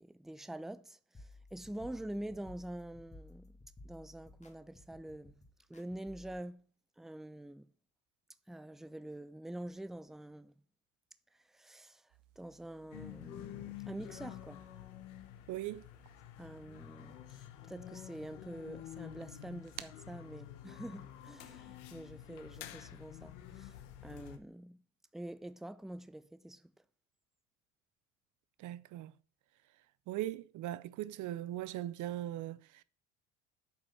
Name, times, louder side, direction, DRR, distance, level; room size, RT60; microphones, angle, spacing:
voice 1, 0.0-3.6 3.8-5.4 5.7-6.6 7.0-7.7 8.5-10.6 11.5-12.1 12.4-14.6 16.4-23.8 24.0-24.8 25.1-26.7, right 1 dB, ahead, 0.6 m, -46 dB
sound 1, 1.1-6.4, left 2 dB, 20° left, 1.9 m, -56 dB
sound 2, 12.1-22.3, right 14 dB, 85° right, 0.8 m, -59 dB
sound 3, 12.9-24.4, left 12 dB, 90° left, 1.1 m, -49 dB
voice 2, 15.5-15.9 28.6-29.1 30.1-32.8, right 14 dB, 55° right, 0.6 m, -39 dB
8.5 x 5.2 x 5.8 m
supercardioid pair, 75°, 35 cm